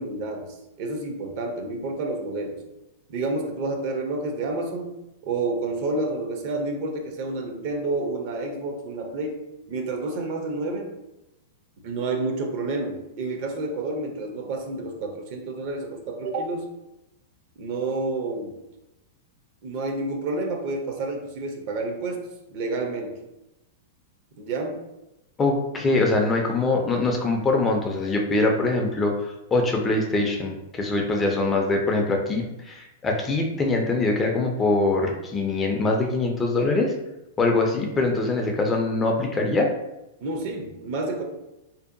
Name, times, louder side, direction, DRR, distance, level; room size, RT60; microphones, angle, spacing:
voice 1, 0.0-2.6 3.1-9.4 9.7-10.9 11.8-16.7 17.6-18.6 19.6-23.2 24.4-24.8 40.2-41.2, right 2 dB, 50° right, 3 dB, 0.5 m, -29 dB
voice 2, 25.4-36.9 37.4-39.7, left 2 dB, 15° left, 1 dB, 0.3 m, -23 dB
2.6 x 2.1 x 2.5 m, 0.93 s
hypercardioid pair, 140°, 0 cm